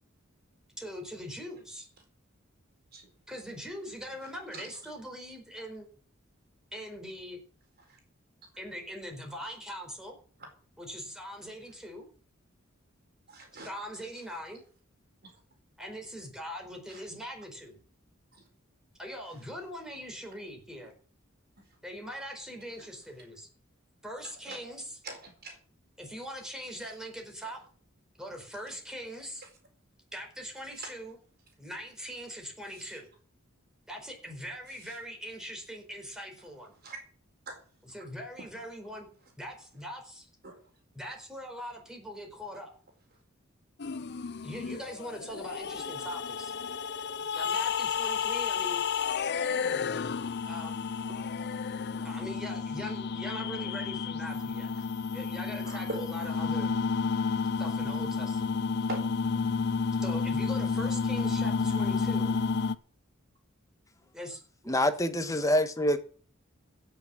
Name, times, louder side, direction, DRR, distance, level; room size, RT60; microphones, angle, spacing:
voice 1, 0.8-1.9 3.3-5.9 6.7-7.4 8.6-10.2 10.8-12.1 13.6-14.6 15.8-17.8 19.0-20.9 21.8-23.5 24.0-25.0 26.0-27.6 28.2-29.5 30.1-31.2 31.6-33.1 33.9-36.7 37.8-39.1 39.4-40.3 40.9-42.7 44.4-46.5 47.3-48.8 50.4-50.9 52.0-54.7 55.1-56.7 57.6-58.6 60.0-62.4 64.0-64.8, equal, 5° right, 4.6 m, -41 dB
voice 2, 4.2-4.8 7.8-8.0 13.3-13.7 14.0-14.1 15.2-15.3 16.9-17.0 18.3-18.4 24.5-24.6 25.0-25.6 27.4-27.5 29.4-29.5 30.7-30.9 32.7-33.0 34.8-35.0 36.8-37.0 37.5-37.6 38.4-38.5 40.4-40.6 51.1-51.2 54.7-54.8 55.6-56.0 56.3-56.4 58.8-59.4, right 2 dB, 50° right, 4.4 m, -43 dB
sound 1, 43.8-62.7, left 5 dB, 55° left, 0.6 m, -31 dB
voice 3, 64.7-66.0, left 1 dB, 15° left, 1.5 m, -26 dB
16.0 x 7.0 x 7.5 m
head